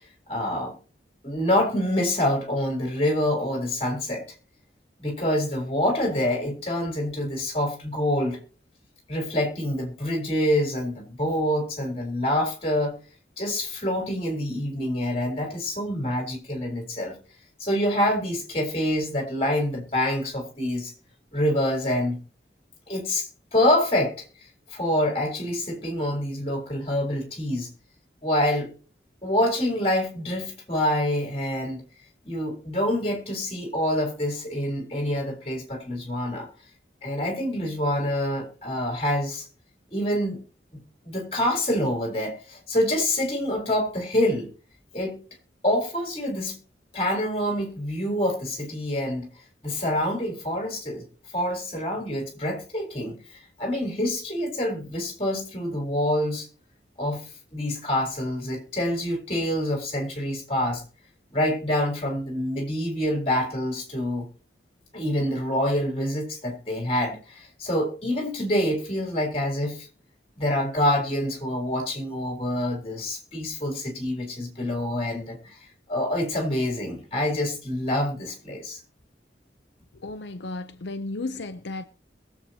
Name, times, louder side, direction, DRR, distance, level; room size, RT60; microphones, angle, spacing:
voice 1, 0.3-0.8 1.2-4.2 5.0-8.4 9.1-13.0 13.4-17.1 17.6-20.9 21.3-22.2 22.9-24.2 24.7-27.7 28.2-28.7 29.2-31.8 32.2-36.5 37.0-39.5 39.9-40.4 40.7-44.5 44.9-45.2 45.6-46.6 46.9-49.3 49.6-51.1 51.3-56.5 57.0-57.2 57.5-60.8 61.3-64.3 64.9-69.9 70.4-75.6 75.9-78.8, left 1 dB, 30° left, 4.2 m, -26 dB
voice 2, 80.0-81.8, left 2 dB, 80° left, 0.7 m, -34 dB
22.0 x 7.9 x 2.9 m
head